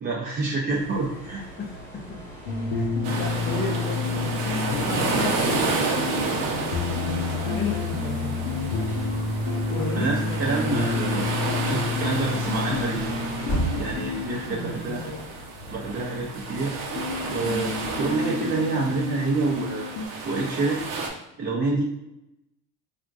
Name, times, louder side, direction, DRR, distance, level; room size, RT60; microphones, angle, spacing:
voice 1, 0.0-1.4 3.0-3.3 10.0-11.4 11.6-13.0 13.8-15.0 15.7-16.7 17.3-19.9 20.2-20.8 21.4-21.8, right 3 dB, 25° right, -4 dB, 0.6 m, -27 dB
sound 1, 0.7-18.2, right 1 dB, 5° left, 1.1 m, -39 dB
sound 2, 2.5-15.3 17.0-20.1, left 4 dB, 85° left, 0.7 m, -30 dB
sound 3, 3.0-21.1, right 3 dB, 55° right, 0.8 m, -31 dB
voice 2, 3.2-8.7 9.7-10.9 14.5-15.3, left 3 dB, 25° left, 0 dB, 0.6 m, -34 dB
3.5 x 2.4 x 2.4 m, 0.89 s
supercardioid pair, 100°, 39 cm